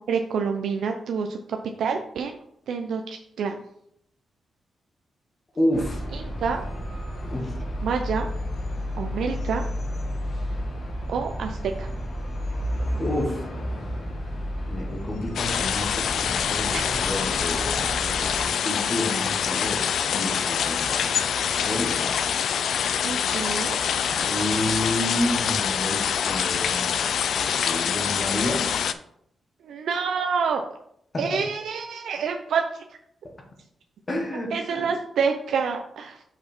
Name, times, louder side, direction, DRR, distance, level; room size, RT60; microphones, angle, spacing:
voice 1, 0.0-1.4 1.8-2.4 2.7-3.6 6.4-6.6 7.8-8.3 9.0-9.6 11.1-11.9 16.7-16.9 23.0-23.8 29.6-30.6 31.2-32.8 34.5-36.2, right 6 dB, 85° right, 4 dB, 0.5 m, -27 dB
voice 2, 5.5-6.0 7.3-7.5 13.0-13.5 14.7-21.1 21.4-22.1 24.1-28.8 31.1-31.4 33.2-33.3 34.1-34.9, left 1 dB, 25° left, 2 dB, 1.4 m, -30 dB
sound 1, 5.7-18.4, equal, 50° left, 1.9 m, -32 dB
sound 2, 15.4-28.9, left 8 dB, 75° left, 0.4 m, -25 dB
6.1 x 5.2 x 4.4 m, 0.73 s
wide cardioid pair, 165°, 0 cm